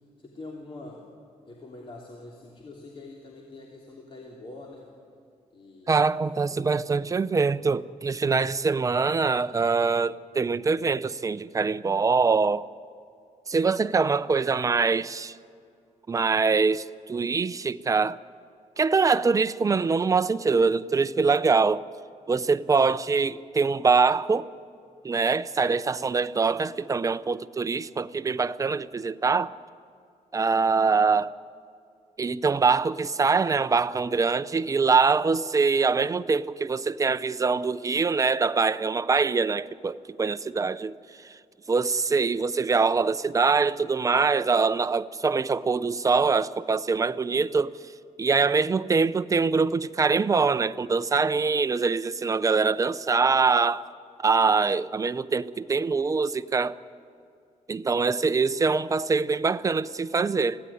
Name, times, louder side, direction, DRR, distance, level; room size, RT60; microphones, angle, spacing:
voice 1, 0.2-1.0 1.5-4.9 5.5-6.6 25.9-26.1, left 2 dB, 40° left, 3.2 m, -44 dB
voice 2, 5.9-12.6 13.5-15.4 16.1-18.2 18.8-21.9 22.3-24.5 25.0-29.5 30.3-31.3 32.2-40.9 41.2-41.4 41.7-47.7 48.2-53.9 54.2-56.8 57.7-60.6, right 4 dB, 25° right, 0.6 m, -24 dB
25.5 x 17.0 x 10.0 m
cardioid pair, 130°, 13 cm